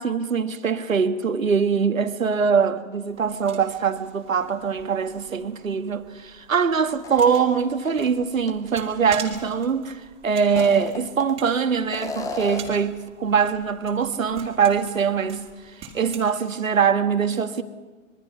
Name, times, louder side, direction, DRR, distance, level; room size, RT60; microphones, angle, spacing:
voice 1, 0.0-15.4 15.8-17.6, right 6 dB, 75° right, 1.7 m, -23 dB
sound 1, 3.1-16.2, right 6 dB, 15° right, 2.9 m, -45 dB
sound 2, 7.0-8.1 8.5-8.6 10.4-11.5 11.9-12.8, left 3 dB, 10° left, 0.9 m, -34 dB
25.5 x 22.5 x 5.7 m
figure-of-eight pair, 130°, 40 cm